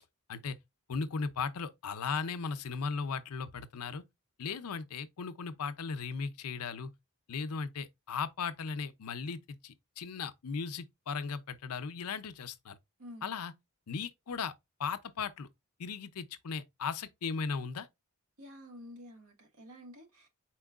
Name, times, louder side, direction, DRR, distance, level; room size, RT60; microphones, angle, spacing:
voice 1, 0.9-4.0 4.4-6.9 7.3-12.8 13.2-13.5 13.9-14.5 14.8-15.5 15.8-17.9, left 5 dB, 90° left, 0.6 m, -37 dB
voice 2, 13.0-13.4 18.4-20.3, left 1 dB, 75° right, 1.4 m, -50 dB
4.6 x 4.3 x 2.3 m
head